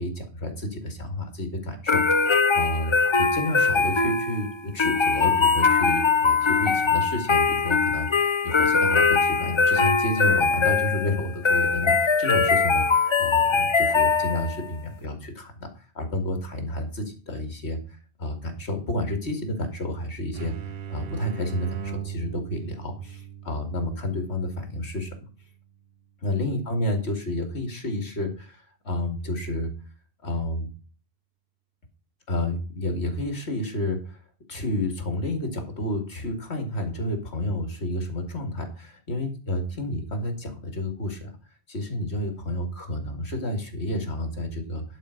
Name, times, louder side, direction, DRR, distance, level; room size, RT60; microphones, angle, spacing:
voice 1, 0.0-20.5 20.9-25.1 26.2-29.7 30.2-30.7 32.3-34.2 34.5-41.3 41.7-44.8, left 1 dB, 70° left, 6 dB, 2.6 m, -30 dB
sound 1, 1.9-14.7, left 4 dB, 35° left, 0.6 m, -22 dB
sound 2, 20.3-25.8, right 9 dB, 60° right, 0.9 m, -39 dB
11.0 x 4.9 x 6.5 m, 0.36 s
omnidirectional pair, 1.1 m